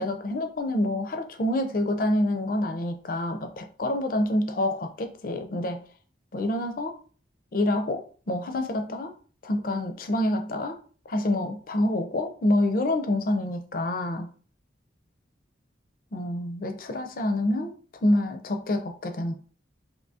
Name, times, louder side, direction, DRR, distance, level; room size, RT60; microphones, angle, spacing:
voice 1, 0.0-5.8 6.3-7.0 7.5-9.1 9.4-10.8 11.1-14.3 16.1-17.7 18.0-19.3, left 1 dB, 45° left, 0.4 m, -27 dB
3.5 x 2.7 x 2.6 m
head